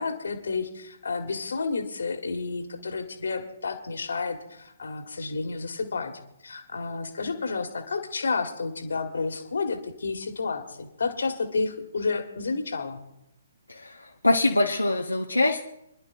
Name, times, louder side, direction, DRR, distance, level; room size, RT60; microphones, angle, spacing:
voice 1, 0.0-6.1 6.4-13.0, left 4 dB, 60° left, 6 dB, 1.8 m, -30 dB
voice 2, 13.7-15.6, left 2 dB, 85° left, 0 dB, 1.0 m, -24 dB
26.0 x 11.0 x 2.5 m, 0.83 s
figure-of-eight pair, 130°, 0 cm